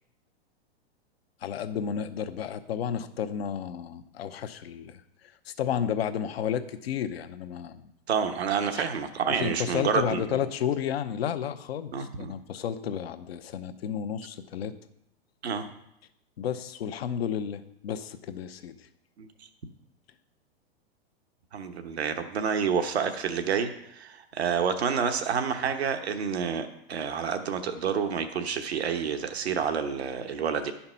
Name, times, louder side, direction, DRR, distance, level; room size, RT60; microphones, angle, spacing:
voice 1, 1.4-7.9 8.8-8.9 9.3-14.7 16.4-18.9, left 8 dB, 75° left, 9 dB, 0.9 m, -32 dB
voice 2, 8.1-10.4 11.9-12.3 15.4-15.7 19.2-19.3 21.5-30.7, right 6 dB, 85° right, 7 dB, 1.1 m, -29 dB
10.5 x 5.7 x 5.6 m, 0.81 s
hypercardioid pair, 115°, 31 cm